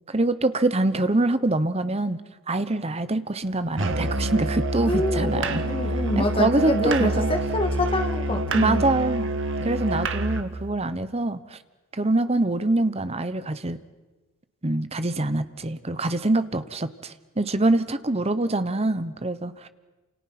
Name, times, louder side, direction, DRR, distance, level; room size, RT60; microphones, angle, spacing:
voice 1, 0.1-2.2 2.5-5.6 6.2-7.3 8.5-9.3 9.6-11.6 11.9-13.8 14.6-19.7, right 2 dB, 30° right, 12 dB, 1.0 m, -24 dB
Musical instrument, 3.8-10.5, right 1 dB, 60° right, 1.6 m, -27 dB
voice 2, 4.8-8.9, left 1 dB, 25° left, 5 dB, 2.3 m, -27 dB
29.5 x 28.0 x 6.0 m, 1.2 s
head